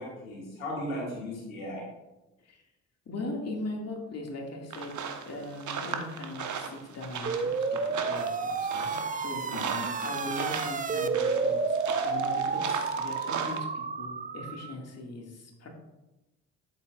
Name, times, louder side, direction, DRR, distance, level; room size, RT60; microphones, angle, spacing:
voice 1, 0.0-1.8 9.5-9.8, left 1 dB, 85° left, -3 dB, 2.2 m, -36 dB
voice 2, 3.1-4.9 5.2-9.5 10.0-15.7, left 2 dB, 40° left, 0 dB, 2.2 m, -39 dB
sound 1, 4.7-13.6, right 6 dB, 45° right, 1.2 m, -37 dB
sound 2, 7.3-14.7, right 5 dB, 20° right, 0.7 m, -30 dB
12.5 x 7.5 x 2.5 m, 1.0 s
figure-of-eight pair, 45°, 40 cm